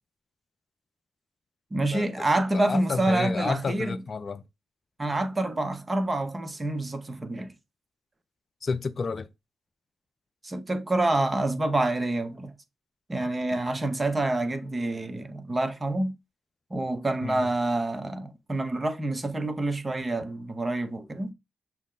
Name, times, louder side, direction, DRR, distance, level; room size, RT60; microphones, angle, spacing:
voice 1, 1.7-4.0 5.0-7.5 10.4-12.5 13.1-16.1 16.7-21.3, right 2 dB, 30° right, 0.9 m, -27 dB
voice 2, 2.5-4.4 8.6-9.3 17.2-17.4, left 4 dB, 50° left, 0.4 m, -30 dB
6.2 x 2.1 x 3.7 m
supercardioid pair, 45°, 0 cm